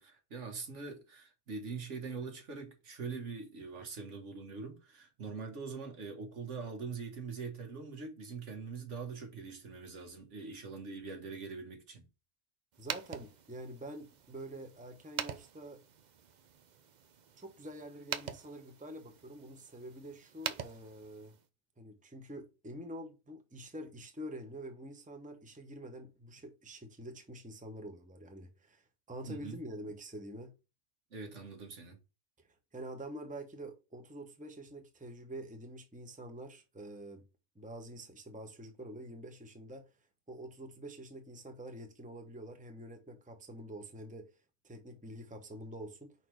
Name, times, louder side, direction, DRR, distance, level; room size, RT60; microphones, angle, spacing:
voice 1, 0.0-12.1 29.3-29.6 31.1-32.0, right 4 dB, 75° right, 1.7 m, -43 dB
sound 1, 12.7-21.5, right 7 dB, 50° right, 0.6 m, -45 dB
voice 2, 12.8-15.8 17.4-21.3 21.8-30.5 32.7-37.2 37.5-39.9 40.3-44.3 44.6-46.1, right 1 dB, 5° right, 0.9 m, -46 dB
5.2 x 4.2 x 4.5 m
omnidirectional pair, 1.3 m